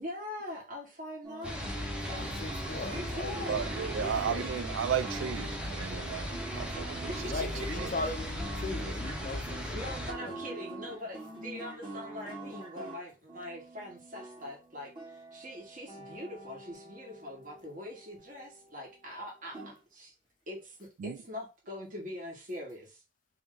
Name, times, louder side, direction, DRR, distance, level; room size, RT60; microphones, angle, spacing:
voice 1, 0.0-2.2 2.8-3.6 6.9-7.3 9.5-20.1 20.5-23.0, left 1 dB, 45° right, 1.3 m, -43 dB
sound 1, 1.2-18.6 19.5-19.8, right 2 dB, 25° right, 1.3 m, -45 dB
sound 2, 1.4-10.1, left 1 dB, 5° right, 0.6 m, -37 dB
voice 2, 2.2-4.5 7.3-9.9 10.2-10.3, left 2 dB, 45° left, 0.4 m, -39 dB
voice 3, 3.5-7.3 7.7-7.9 8.7-9.0 21.0-21.2, right 8 dB, 85° right, 0.3 m, -34 dB
3.2 x 2.9 x 3.7 m
head